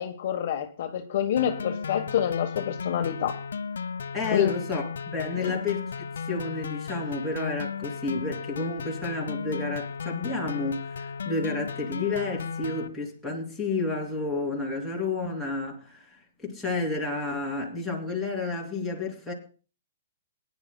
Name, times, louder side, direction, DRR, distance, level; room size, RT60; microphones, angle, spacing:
voice 1, 0.0-3.4 4.3-4.5 5.4-5.6, left 9 dB, 50° left, 1.2 m, -27 dB
sound 1, 1.4-12.9, left 6 dB, 90° left, 0.9 m, -35 dB
voice 2, 4.1-5.9 6.3-19.3, left 3 dB, ahead, 3.1 m, -31 dB
21.5 x 10.5 x 2.3 m
hypercardioid pair, 160°, 0 cm